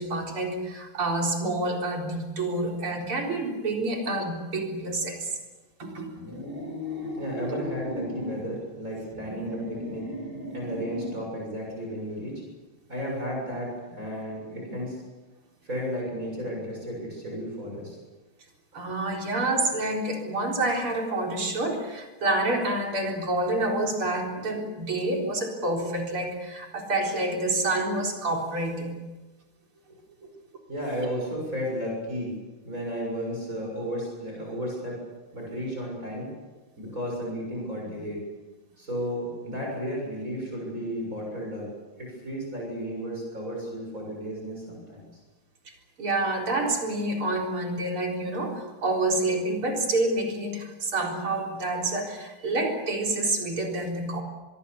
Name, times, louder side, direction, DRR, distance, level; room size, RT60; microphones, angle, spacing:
voice 1, 0.0-5.4 5.8-6.2 7.5-7.6 18.7-28.9 46.0-54.2, right 2 dB, 80° right, 1 dB, 5.0 m, -28 dB
sound 1, 6.2-8.5 9.1-11.3, left 1 dB, 10° right, 7.5 m, -36 dB
voice 2, 7.1-10.1 10.5-12.4 12.9-15.0 15.6-18.0 18.7-18.8 29.9-30.3 30.7-32.3 32.6-35.0 35.3-36.3 36.8-38.2 38.8-41.7 42.0-45.2, equal, 35° right, -2 dB, 7.4 m, -33 dB
25.5 x 21.5 x 7.2 m, 1.2 s
omnidirectional pair, 2.3 m